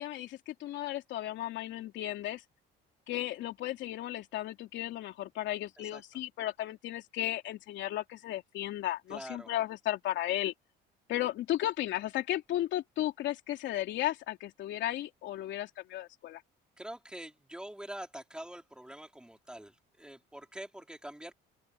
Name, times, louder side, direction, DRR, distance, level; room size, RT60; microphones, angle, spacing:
voice 1, 0.0-2.4 3.1-10.5 11.1-16.4, left 14 dB, 70° left, 2.9 m, -35 dB
voice 2, 9.1-9.5 16.8-21.3, right 1 dB, 5° right, 4.4 m, -45 dB
open air
cardioid pair, 130°, 20 cm